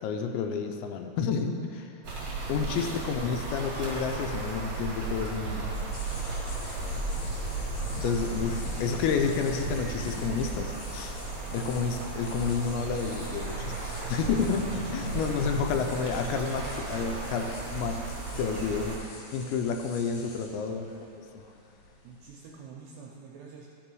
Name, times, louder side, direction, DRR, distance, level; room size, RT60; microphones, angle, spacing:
voice 1, 0.0-1.9 2.5-5.7 8.0-11.2 11.5-19.0 19.3-20.9 21.3-21.4, left 5 dB, 85° left, 5 dB, 2.7 m, -30 dB
sound 1, 2.0-19.0, right 3 dB, 60° right, 1.7 m, -35 dB
voice 2, 2.6-3.1 15.1-15.6 20.7-21.1 22.0-23.7, right 6 dB, 80° right, -2 dB, 2.4 m, -47 dB
sound 2, 5.7-22.5, left 1 dB, 65° left, 2.5 m, -45 dB
12.5 x 5.4 x 4.6 m, 2.7 s
omnidirectional pair, 5.4 m